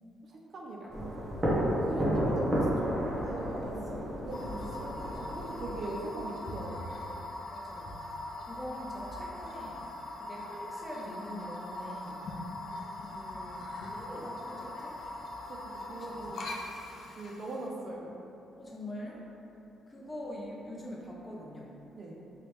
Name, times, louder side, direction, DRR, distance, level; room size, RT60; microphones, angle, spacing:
voice 1, 0.2-1.3 1.8-2.9 3.2-3.9 4.2-7.1 15.0-15.1 15.4-16.7 17.1-18.2 22.0-22.2, right 2 dB, 50° right, -2 dB, 0.5 m, -41 dB
sound 1, 0.9-5.9, equal, 25° right, 1.0 m, -31 dB
voice 2, 2.6-3.1 3.4-4.2 7.4-8.1 8.4-9.9 10.2-12.3 12.9-15.0 15.9-16.5 18.6-19.3 19.9-21.7, left 1 dB, 20° left, -3 dB, 0.6 m, -44 dB
sound 2, 4.3-17.7, left 1 dB, 60° left, 0.4 m, -41 dB
3.2 x 2.8 x 3.1 m, 2.8 s
cardioid pair, 90°, 0 cm